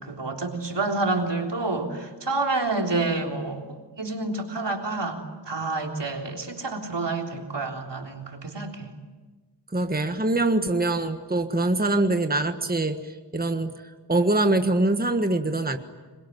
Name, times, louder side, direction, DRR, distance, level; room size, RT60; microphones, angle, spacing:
voice 1, 0.0-3.6 4.0-8.9, right 3 dB, 80° right, 2 dB, 3.7 m, -28 dB
voice 2, 9.7-13.7 14.1-15.8, right 2 dB, 20° right, 7 dB, 1.5 m, -24 dB
27.0 x 22.0 x 9.5 m, 1.3 s
wide cardioid pair, 65°, 41 cm